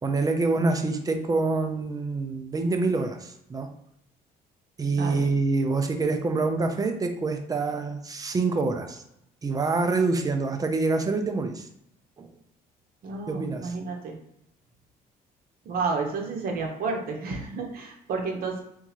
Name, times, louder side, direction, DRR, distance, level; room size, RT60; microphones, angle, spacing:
voice 1, 0.0-3.7 4.8-9.0 9.4-11.7 12.2-12.3 13.3-13.8, right 3 dB, 20° right, 6 dB, 0.5 m, -26 dB
voice 2, 13.0-14.2 15.6-18.6, right 4 dB, 60° right, 1 dB, 1.0 m, -31 dB
3.7 x 2.7 x 3.0 m, 0.79 s
cardioid pair, 110°, 17 cm